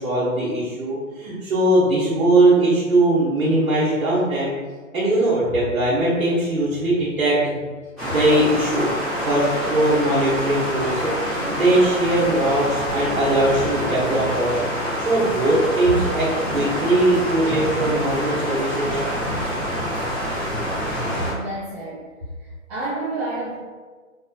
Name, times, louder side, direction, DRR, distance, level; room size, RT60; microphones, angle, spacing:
voice 1, 0.0-4.5 4.9-7.6 8.0-8.9 9.2-19.0, right 1 dB, 85° right, -9 dB, 1.2 m, -20 dB
sound 1, 8.0-21.3, equal, ahead, 1.0 m, -26 dB
voice 2, 21.3-22.1 22.4-23.5, right 2 dB, 25° right, -11 dB, 0.9 m, -30 dB
4.6 x 2.3 x 2.8 m, 1.4 s
hypercardioid pair, 135°, 41 cm